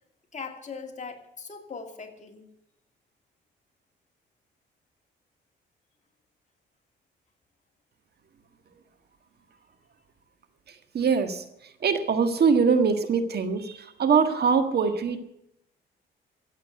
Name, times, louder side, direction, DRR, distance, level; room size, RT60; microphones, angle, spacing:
voice 1, 0.3-2.5, left 5 dB, 35° left, 4 dB, 2.5 m, -40 dB
voice 2, 10.9-11.4 11.8-15.2, right 5 dB, 55° right, 9 dB, 1.6 m, -23 dB
14.5 x 8.5 x 9.4 m, 0.79 s
cardioid pair, 90°, 20 cm